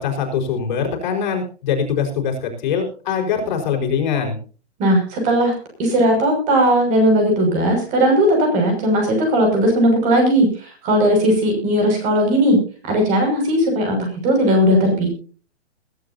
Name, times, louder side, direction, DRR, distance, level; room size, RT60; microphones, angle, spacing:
voice 1, 0.0-4.4, left 6 dB, 45° left, 2 dB, 4.8 m, -22 dB
voice 2, 4.8-5.5 5.8-12.6 12.9-15.1, equal, 20° right, 3 dB, 6.2 m, -17 dB
21.5 x 12.5 x 2.8 m, 0.38 s
hypercardioid pair, 160°, 33 cm